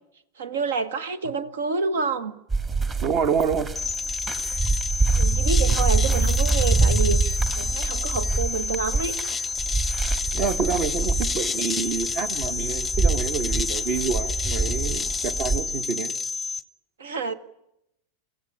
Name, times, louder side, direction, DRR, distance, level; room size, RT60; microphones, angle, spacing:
voice 1, 0.4-2.4 5.1-9.2 17.0-17.3, right 4 dB, 65° right, 14 dB, 1.4 m, -28 dB
sound 1, 2.5-15.6, right 3 dB, 25° right, 2.3 m, -25 dB
voice 2, 3.0-3.7 10.3-16.1, right 6 dB, 40° right, 13 dB, 1.4 m, -27 dB
sound 2, 3.8-16.6, left 4 dB, 10° left, 0.8 m, -29 dB
24.5 x 16.0 x 9.9 m, 0.84 s
figure-of-eight pair, 90°, 0 cm